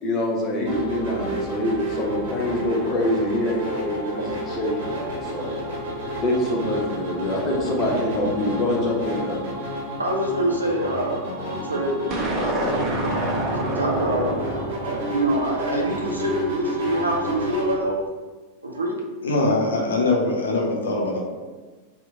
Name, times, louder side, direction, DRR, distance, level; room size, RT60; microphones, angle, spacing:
voice 1, 0.0-5.5 6.2-9.4, left 1 dB, 30° left, -2 dB, 0.7 m, -25 dB
sound 1, 0.6-17.7, equal, 60° right, 0.9 m, -31 dB
voice 2, 10.0-12.6 13.0-14.3 14.9-18.0 18.6-18.9, right 1 dB, 80° right, 0 dB, 0.5 m, -26 dB
sound 2, 12.1-16.5, right 1 dB, 30° right, 0.5 m, -28 dB
voice 3, 19.2-21.3, left 2 dB, 65° left, 0 dB, 0.5 m, -22 dB
2.8 x 2.1 x 3.5 m, 1.3 s
figure-of-eight pair, 90°, 0 cm